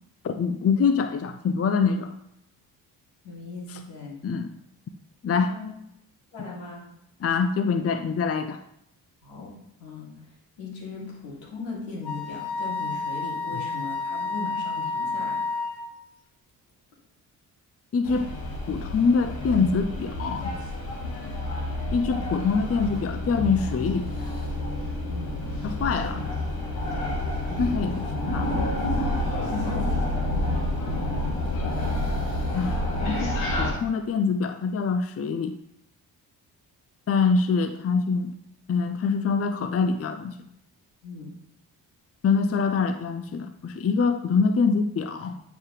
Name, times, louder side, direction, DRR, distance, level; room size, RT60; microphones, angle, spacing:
voice 1, 0.2-2.1 3.7-3.8 4.2-4.5 5.2-5.5 7.2-8.6 17.9-18.3 18.7-20.5 21.9-24.1 25.6-26.3 27.6-28.5 32.5-35.5 37.1-38.4 38.7-40.5 42.2-45.4, left 5 dB, 30° left, 9 dB, 0.6 m, -25 dB
voice 2, 3.2-4.2 5.4-5.7 6.3-6.8 9.2-9.5 9.8-10.1 10.6-15.4 25.1-25.3 29.4-30.3 41.0-41.3, left 3 dB, 75° left, -4 dB, 2.8 m, -38 dB
Wind instrument woodwind instrument, 12.0-15.9, left 3 dB, 55° left, 1.4 m, -30 dB
sound 1, 18.0-33.7, left 1 dB, 90° left, 1.6 m, -29 dB
9.2 x 4.9 x 3.3 m, 0.78 s
hypercardioid pair, 45°, 47 cm